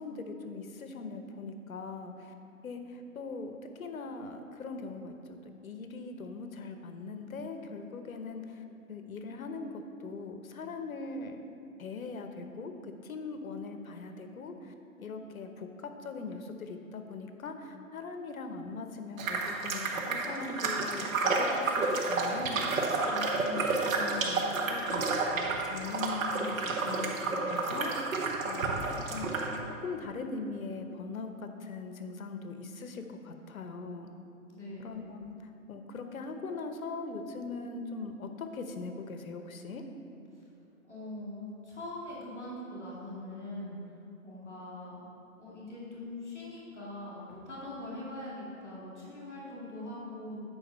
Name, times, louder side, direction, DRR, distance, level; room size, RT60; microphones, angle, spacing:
voice 1, 0.0-2.3 2.6-5.4 5.6-11.4 11.8-24.4 24.7-28.1 28.4-29.3 29.8-34.1 34.8-39.8, left 4 dB, 75° left, 6 dB, 0.9 m, -41 dB
sound 1, 19.2-29.6, right 3 dB, 70° right, 1.1 m, -31 dB
voice 2, 34.5-34.9 40.8-43.8 44.2-45.0 45.4-50.4, left 1 dB, ahead, -20 dB, 0.5 m, -42 dB
8.4 x 4.8 x 5.4 m, 2.7 s
hypercardioid pair, 160°, 42 cm